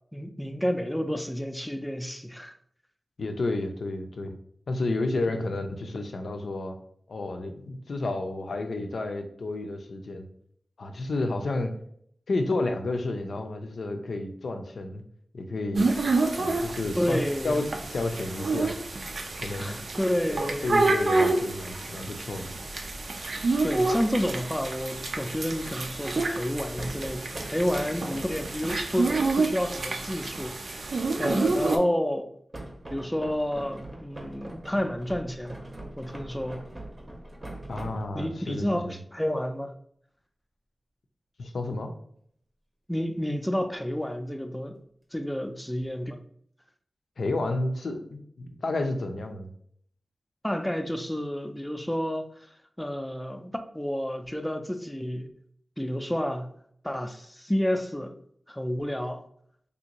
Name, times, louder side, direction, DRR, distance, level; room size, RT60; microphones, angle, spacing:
voice 1, 0.1-2.5 5.3-5.5 17.0-17.6 19.6-20.7 23.6-32.3 32.9-35.6 36.0-36.6 38.1-39.7 42.9-44.8 45.1-46.2 50.4-52.3 52.8-55.3 55.8-56.5 56.8-58.2 58.5-59.2, equal, 5° left, 6 dB, 0.3 m, -30 dB
voice 2, 3.2-4.4 4.7-6.8 7.1-10.3 10.8-11.7 12.3-15.0 15.3-15.9 16.4-17.2 17.4-17.6 17.9-18.7 19.4-19.8 20.6-22.5 37.7-38.8 41.4-41.9 47.2-49.5, left 2 dB, 80° left, 6 dB, 0.4 m, -31 dB
sound 1, 15.7-31.8, right 3 dB, 80° right, 0.4 m, -28 dB
sound 2, 26.8-29.4 32.5-38.4, right 1 dB, 25° right, 0.7 m, -41 dB
3.3 x 2.6 x 2.9 m, 0.66 s
wide cardioid pair, 85°, 0 cm